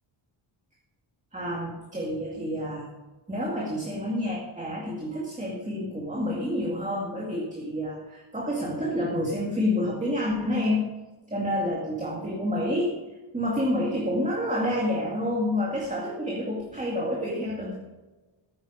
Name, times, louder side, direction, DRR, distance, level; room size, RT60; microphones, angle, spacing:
voice 1, 1.3-2.9 3.3-10.8 11.3-13.0 13.3-17.8, left 1 dB, 15° right, -3 dB, 2.2 m, -28 dB
13.5 x 10.0 x 5.0 m, 1.2 s
wide cardioid pair, 120°, 49 cm